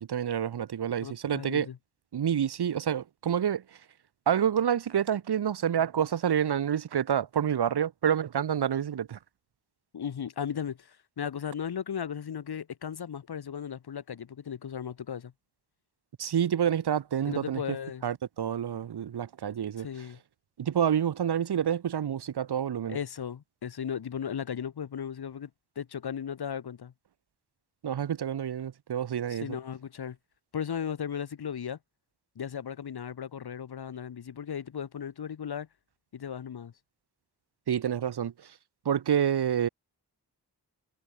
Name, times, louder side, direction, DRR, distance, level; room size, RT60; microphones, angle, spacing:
voice 1, 0.0-1.7 2.1-3.8 4.3-9.2 16.2-17.6 18.0-19.9 20.6-23.0 27.8-29.6 37.7-38.6 38.8-39.7, right 9 dB, 70° right, 0.7 m, -28 dB
voice 2, 1.0-1.8 9.9-15.3 17.3-18.0 19.8-20.2 22.9-25.5 25.8-26.9 29.3-30.2 30.5-31.8 32.4-35.7 36.1-36.7, left 8 dB, 70° left, 0.8 m, -36 dB
wide cardioid pair, 60°, 40 cm